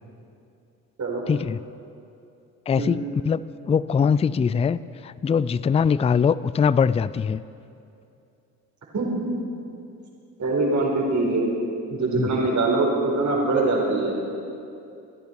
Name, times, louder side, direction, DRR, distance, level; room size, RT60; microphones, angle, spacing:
voice 1, 1.3-1.6 2.7-3.4 3.7-7.4 12.2-12.3, left 6 dB, 15° left, 18 dB, 0.3 m, -22 dB
voice 2, 8.9-9.3 10.4-11.5 11.9-14.2, right 2 dB, 50° right, -1 dB, 4.6 m, -23 dB
26.0 x 10.5 x 4.7 m, 2.6 s
supercardioid pair, 70°, 38 cm